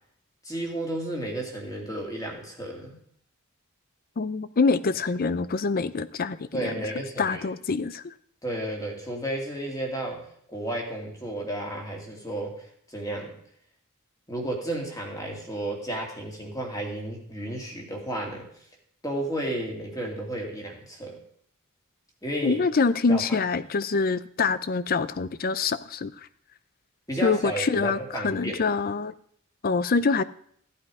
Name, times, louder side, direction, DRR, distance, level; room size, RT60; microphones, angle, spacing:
voice 1, 0.4-3.0 6.5-7.4 8.4-13.4 14.3-18.5 19.0-21.2 22.2-22.6 23.1-23.2 27.1-28.6, right 1 dB, 15° left, 1 dB, 2.4 m, -32 dB
voice 2, 4.2-6.7 7.2-8.1 22.4-26.1 27.2-29.1 29.6-30.2, left 4 dB, 40° left, 16 dB, 0.5 m, -25 dB
14.5 x 8.6 x 4.9 m, 0.66 s
head